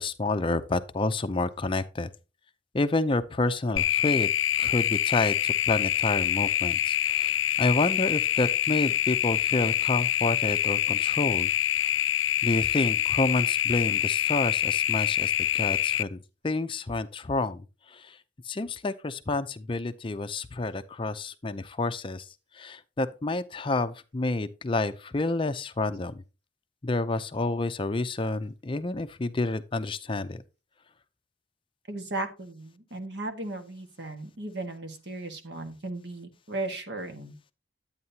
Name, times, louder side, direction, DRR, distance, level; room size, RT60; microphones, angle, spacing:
voice 1, 0.0-2.1 2.7-4.3 4.6-11.5 11.8-11.9 12.4-16.2 16.4-18.2 18.4-22.3 22.5-26.2 26.8-30.4, left 2 dB, 25° left, 0.5 m, -29 dB
sound 1, 3.8-16.0, left 11 dB, 90° left, 0.5 m, -26 dB
voice 2, 31.9-37.3, right 2 dB, 60° right, 1.6 m, -36 dB
11.0 x 8.7 x 2.8 m
head